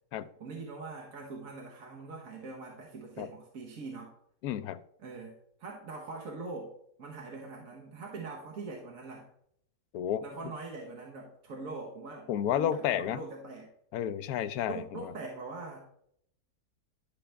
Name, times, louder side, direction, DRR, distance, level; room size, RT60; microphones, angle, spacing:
voice 1, 0.4-4.1 5.0-5.3 5.6-6.7 7.0-9.3 10.2-13.7 14.7-15.9, right 3 dB, 60° right, 1.6 m, -42 dB
voice 2, 4.4-4.8 9.9-10.3 12.3-13.2 13.9-15.1, left 10 dB, 75° left, 1.1 m, -31 dB
11.5 x 5.6 x 3.4 m
omnidirectional pair, 1.6 m